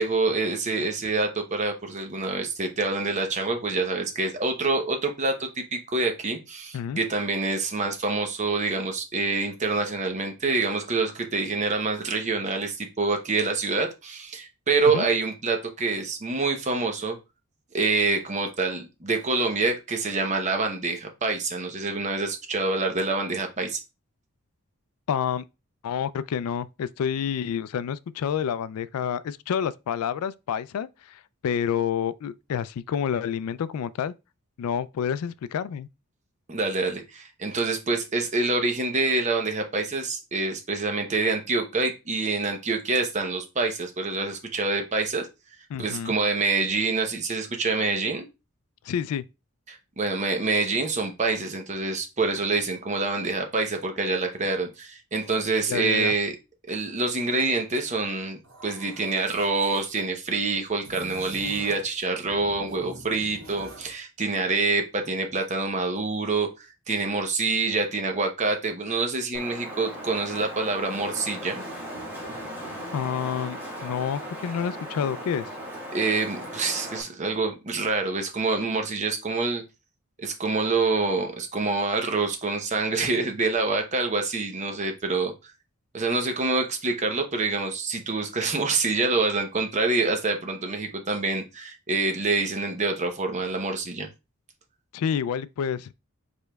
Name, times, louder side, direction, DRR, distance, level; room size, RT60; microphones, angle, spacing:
voice 1, 0.0-17.2 17.7-23.8 36.5-45.3 45.8-48.3 49.7-56.4 56.7-71.6 75.9-79.6 80.2-85.5 85.9-94.1, right 3 dB, 30° right, 0.8 m, -26 dB
voice 2, 25.1-25.4 25.8-34.1 34.6-35.9 45.7-46.1 48.8-49.2 55.7-56.1 72.9-75.5 94.9-95.9, left 8 dB, 80° left, 0.3 m, -29 dB
sound 1, 58.4-59.9 60.8-61.9 62.2-63.9, right 2 dB, 75° right, 2.3 m, -44 dB
Wind, 69.3-77.0, equal, 10° right, 1.5 m, -37 dB
5.0 x 4.4 x 2.3 m
head